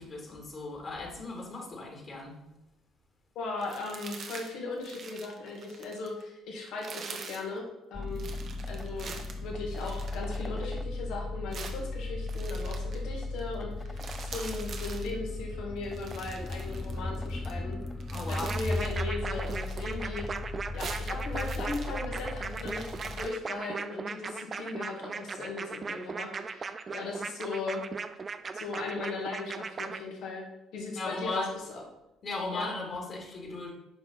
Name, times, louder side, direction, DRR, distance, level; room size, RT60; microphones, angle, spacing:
voice 1, 0.0-2.4 18.1-18.6 30.9-31.5 32.2-33.7, left 2 dB, 45° left, -1 dB, 2.8 m, -37 dB
voice 2, 3.4-8.3 8.7-9.1 9.4-17.8 18.3-20.3 20.7-27.8 28.5-30.5 30.7-31.4 32.5-32.7, left 3 dB, 65° left, -1 dB, 2.0 m, -37 dB
sound 1, 3.6-4.5 4.8-6.2 6.7-7.5 8.2-10.8 11.5-13.0 13.4-13.5 13.8-15.1 15.8-17.5 17.8-19.0 19.3-20.4 20.7-23.3, right 5 dB, 55° right, 1.1 m, -45 dB
sound 2, 7.9-23.3, left 2 dB, 10° left, 0.5 m, -36 dB
sound 3, 18.3-30.0, right 5 dB, 40° right, 0.5 m, -38 dB
9.6 x 5.3 x 4.1 m, 0.93 s
hypercardioid pair, 50°, 0 cm